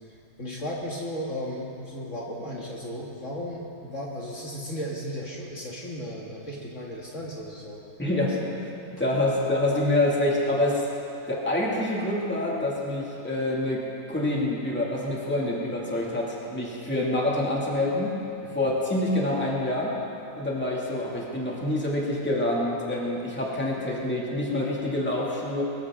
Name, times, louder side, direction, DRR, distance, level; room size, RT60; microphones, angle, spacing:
voice 1, 0.4-7.8, equal, 55° left, -3 dB, 2.0 m, -35 dB
voice 2, 8.0-10.8 11.3-13.8 14.1-18.1 18.5-19.9 20.3-25.6, left 1 dB, 5° left, -4 dB, 2.2 m, -26 dB
22.0 x 14.5 x 3.7 m, 2.8 s
omnidirectional pair, 1.6 m